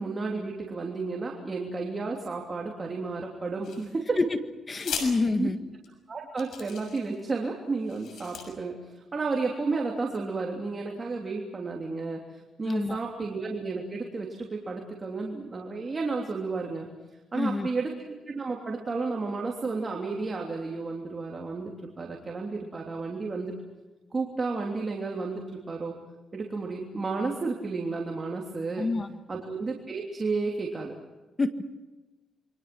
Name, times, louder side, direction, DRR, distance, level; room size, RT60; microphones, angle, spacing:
voice 1, 0.0-4.2 5.4-5.5 6.1-8.7 9.1-16.9 17.3-17.9 18.3-23.5 24.1-25.9 26.3-28.9 29.3-30.9, right 3 dB, 30° right, 0 dB, 3.2 m, -32 dB
sound 1, 3.6-4.2 4.7-5.1 5.8-5.9 6.4-7.2 7.8-8.4, left 7 dB, 75° left, 6.6 m, -38 dB
voice 2, 4.7-5.6 12.6-13.0 17.3-17.7 28.8-29.1 31.4-31.6, left 3 dB, 30° left, 8 dB, 1.8 m, -27 dB
28.0 x 23.5 x 6.2 m, 1.1 s
cardioid pair, 110°, 0 cm